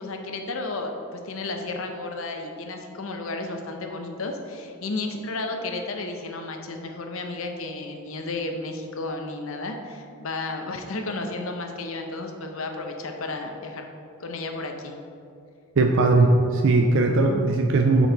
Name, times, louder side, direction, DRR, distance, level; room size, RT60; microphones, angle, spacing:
voice 1, 0.0-13.9 14.2-15.0, left 2 dB, 70° left, 4 dB, 0.7 m, -33 dB
voice 2, 15.8-18.1, right 3 dB, 60° right, 3 dB, 0.4 m, -19 dB
7.8 x 4.6 x 3.9 m, 2.5 s
head